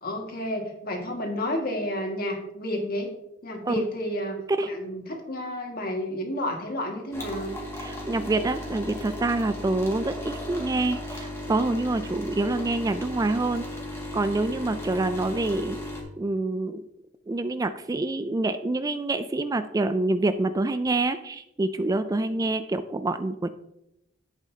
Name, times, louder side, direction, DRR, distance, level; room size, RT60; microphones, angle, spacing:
voice 1, 0.0-3.1 3.4-4.4 4.7-7.5, left 1 dB, 50° left, 2 dB, 1.9 m, -31 dB
sound 1, 7.1-16.0, left 1 dB, 15° left, 2.0 m, -36 dB
voice 2, 7.8-13.6 14.1-15.8 16.2-16.8 17.3-23.5, right 2 dB, 20° right, 11 dB, 0.3 m, -26 dB
11.0 x 8.3 x 2.8 m, 0.85 s
head